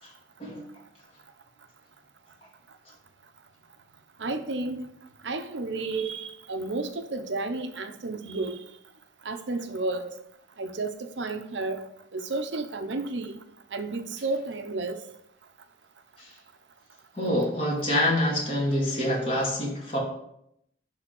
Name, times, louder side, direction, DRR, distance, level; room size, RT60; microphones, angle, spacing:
voice 1, 4.2-4.9 5.2-8.6 9.2-10.1 10.6-13.4 13.7-15.0, right 3 dB, 85° right, 0.9 m, -32 dB
voice 2, 17.1-20.0, left 1 dB, 30° left, 2.6 m, -26 dB
11.0 x 3.7 x 6.1 m
head